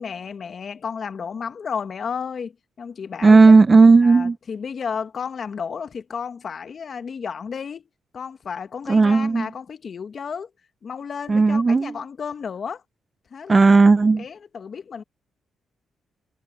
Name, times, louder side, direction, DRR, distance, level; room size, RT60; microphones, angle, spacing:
voice 1, 0.0-3.6 4.0-7.8 8.1-10.5 10.8-12.8 13.3-13.8 14.1-15.0, left 6 dB, 50° left, 1.4 m, -32 dB
voice 2, 3.2-4.4 8.9-9.5 11.3-11.9 13.5-14.2, right 4 dB, 30° right, 0.7 m, -14 dB
cardioid pair, 75°, 0 cm